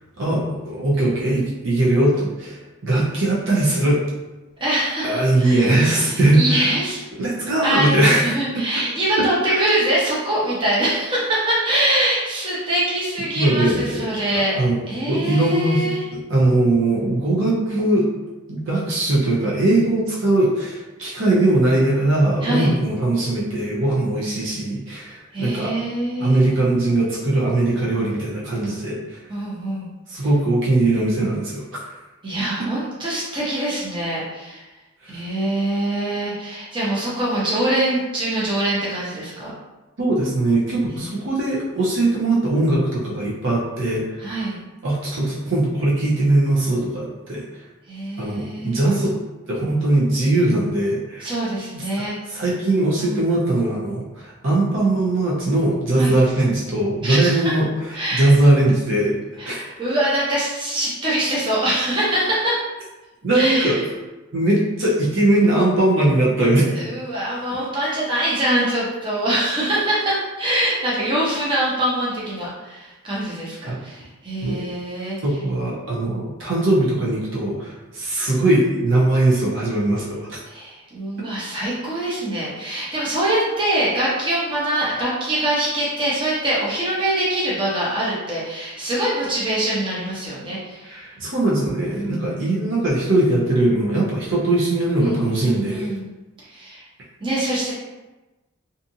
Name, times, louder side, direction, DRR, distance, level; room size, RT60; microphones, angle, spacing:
voice 1, 0.2-4.0 5.0-6.7 7.2-8.3 9.5-9.6 13.4-14.1 14.3-14.8 15.1-18.1 18.5-25.7 26.2-29.2 30.1-31.6 35.0-35.2 40.0-44.0 44.8-47.4 48.2-49.1 49.5-51.3 51.8-51.9 52.3-57.7 58.1-59.5 63.2-63.8 64.3-66.8 73.7-73.8 74.4-74.6 75.2-80.4 90.9-95.9, right 2 dB, 60° right, -5 dB, 0.6 m, -20 dB
voice 2, 4.6-5.7 6.1-7.0 7.6-14.6 14.9-16.1 22.4-22.8 25.3-26.5 29.3-29.9 32.2-34.6 35.1-39.5 40.9-41.1 44.2-44.6 47.9-48.8 51.2-52.2 53.0-53.3 56.0-56.1 57.0-57.5 57.9-58.3 59.4-62.6 63.3-63.8 66.7-75.2 80.5-91.0 91.9-92.5 95.0-96.1 96.5-96.8 97.2-97.7, right 1 dB, 25° right, -8 dB, 0.7 m, -24 dB
2.6 x 2.4 x 2.6 m, 1.1 s
head